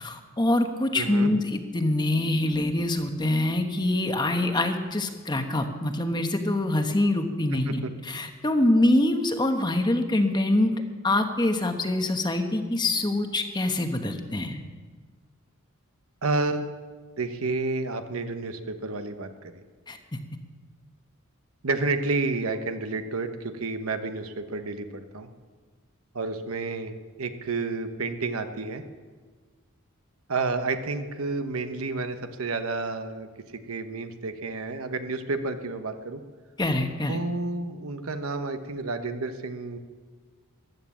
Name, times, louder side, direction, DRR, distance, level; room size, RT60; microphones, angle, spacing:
voice 1, 0.0-14.6 19.9-20.0 36.6-37.2, left 1 dB, 20° left, 6 dB, 1.1 m, -25 dB
voice 2, 0.9-1.3 7.6-7.9 16.2-16.7 17.2-19.3 19.5-19.6 21.6-25.3 26.1-28.8 30.3-33.3 33.7-36.2 37.1-39.8, right 3 dB, 75° right, 8 dB, 1.0 m, -30 dB
15.0 x 11.0 x 7.3 m, 1.5 s
head